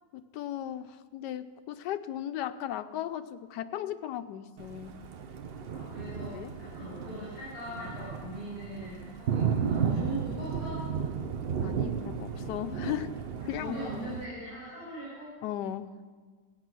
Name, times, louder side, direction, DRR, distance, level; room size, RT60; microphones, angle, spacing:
voice 1, 0.1-5.0 6.3-6.5 11.6-13.2 13.5-13.8 15.4-16.0, left 11 dB, 80° left, 11 dB, 1.2 m, -36 dB
Thunder, 4.6-14.2, right 7 dB, 55° right, 0.7 m, -34 dB
voice 2, 5.7-10.9 13.4-15.3, equal, 65° left, -10 dB, 6.2 m, -40 dB
15.0 x 9.4 x 6.0 m, 1.5 s
omnidirectional pair, 1.9 m